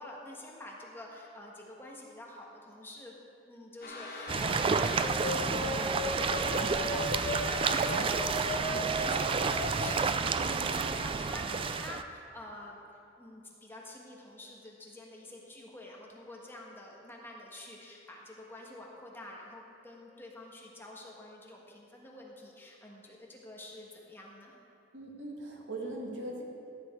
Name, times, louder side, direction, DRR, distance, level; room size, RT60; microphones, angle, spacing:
voice 1, 0.0-3.1 3.4-12.8 13.2-24.6, left 1 dB, 10° left, -2 dB, 1.4 m, -47 dB
sound 1, 3.8-10.0, left 2 dB, 55° left, 1.5 m, -37 dB
sound 2, 4.3-12.0, right 5 dB, 30° right, 0.3 m, -30 dB
voice 2, 10.4-10.7 24.9-26.4, right 1 dB, 75° right, -1 dB, 1.9 m, -40 dB
13.5 x 9.0 x 4.5 m, 2.6 s
head